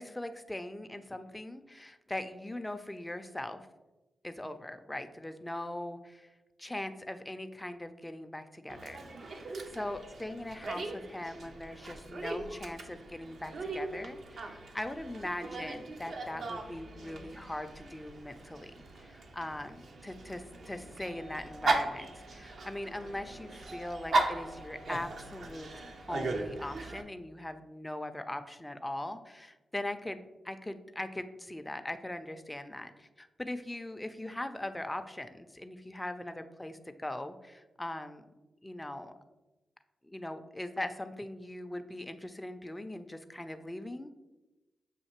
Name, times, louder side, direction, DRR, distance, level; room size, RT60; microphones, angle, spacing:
voice 1, 0.0-3.7 4.2-6.3 6.6-9.4 9.8-25.7 26.1-38.2 38.6-39.1 40.0-44.1, left 1 dB, 15° left, 8 dB, 0.4 m, -40 dB
Dog, 8.7-27.0, right 2 dB, 65° right, 0.5 m, -38 dB
6.5 x 2.6 x 2.9 m, 1.1 s
cardioid pair, 55°, 0 cm